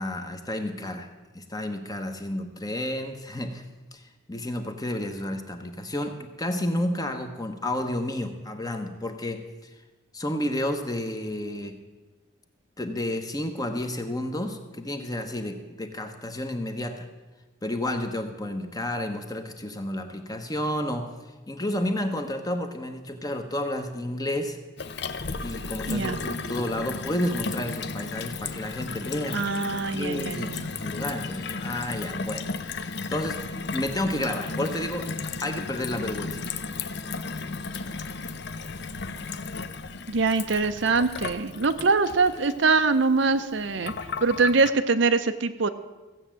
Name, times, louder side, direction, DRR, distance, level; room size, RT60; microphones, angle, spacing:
voice 1, 0.0-3.6 3.9-9.7 10.1-11.8 12.8-17.1 17.6-21.1 21.5-24.6 25.4-29.5 29.9-33.4 33.7-35.1 35.4-36.5, left 1 dB, 20° left, 6 dB, 1.0 m, -31 dB
Gurgling / Water tap faucet / Sink (filling or washing), 24.8-44.7, left 4 dB, 55° left, 0.7 m, -34 dB
voice 2, 25.9-26.2 29.3-30.7 40.1-43.9 44.2-45.7, right 4 dB, 60° right, 10 dB, 0.7 m, -23 dB
15.0 x 8.1 x 7.4 m, 1.2 s
head